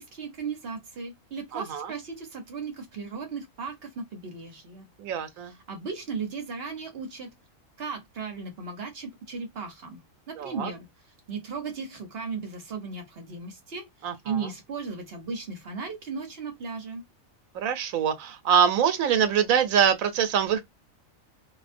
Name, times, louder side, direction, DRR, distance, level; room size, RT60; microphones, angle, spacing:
voice 1, 0.0-4.9 5.4-7.3 7.8-10.0 10.3-10.9 11.3-17.0, right 5 dB, 55° right, 0.8 m, -36 dB
voice 2, 1.5-1.9 5.0-5.5 10.4-10.7 14.0-14.4 17.5-20.6, right 8 dB, 85° right, 1.0 m, -24 dB
2.4 x 2.1 x 2.5 m
omnidirectional pair, 1.4 m